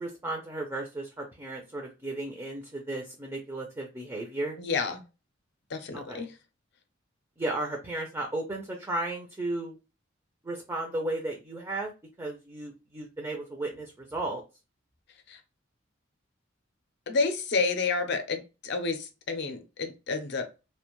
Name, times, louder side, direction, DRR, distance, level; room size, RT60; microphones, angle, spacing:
voice 1, 0.0-4.6 5.9-6.3 7.4-9.8 10.4-11.9 12.2-14.4, right 2 dB, 15° right, 1 dB, 0.4 m, -34 dB
voice 2, 4.6-5.0 5.7-6.3 15.3-15.4 17.1-20.5, left 4 dB, 55° left, 6 dB, 0.5 m, -30 dB
2.4 x 2.1 x 2.9 m, 0.29 s
head